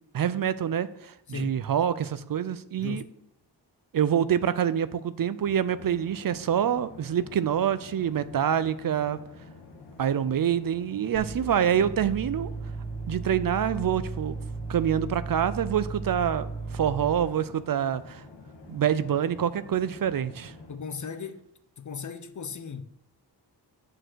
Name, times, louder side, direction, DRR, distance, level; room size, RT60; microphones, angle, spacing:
voice 1, 0.1-3.0 3.9-9.2 10.0-12.5 13.1-14.4 14.7-18.2 18.7-20.5, right 9 dB, 55° right, 0.5 m, -26 dB
voice 2, 1.3-1.6 2.8-3.1 20.7-21.5 21.8-22.8, left 6 dB, 45° left, 0.8 m, -37 dB
sound 1, 5.4-20.8, left 3 dB, 90° left, 1.5 m, -48 dB
sound 2, 11.1-17.3, right 4 dB, 30° right, 1.2 m, -36 dB
8.8 x 4.7 x 6.2 m
cardioid pair, 80°, 42 cm